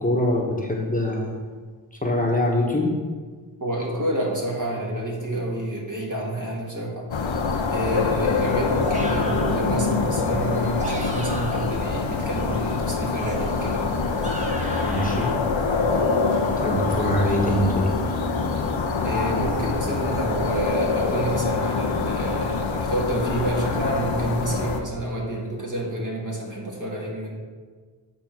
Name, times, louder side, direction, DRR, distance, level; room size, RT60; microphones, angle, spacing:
voice 1, 0.0-1.4 2.0-2.9 14.8-15.3 16.6-17.9, left 1 dB, 20° left, -2 dB, 1.2 m, -23 dB
voice 2, 3.6-7.1 7.7-13.9 19.0-27.4, right 1 dB, 45° right, -3 dB, 1.7 m, -29 dB
sound 1, 7.1-24.8, left 4 dB, 85° left, 0.7 m, -25 dB
Kung Fu Yell, 8.8-9.7 10.6-11.8 13.2-15.3, right 1 dB, 15° right, 1.3 m, -35 dB
sound 2, 11.0-17.6, right 3 dB, 80° right, 0.9 m, -43 dB
8.2 x 3.6 x 5.9 m, 1.5 s
wide cardioid pair, 60°, 45 cm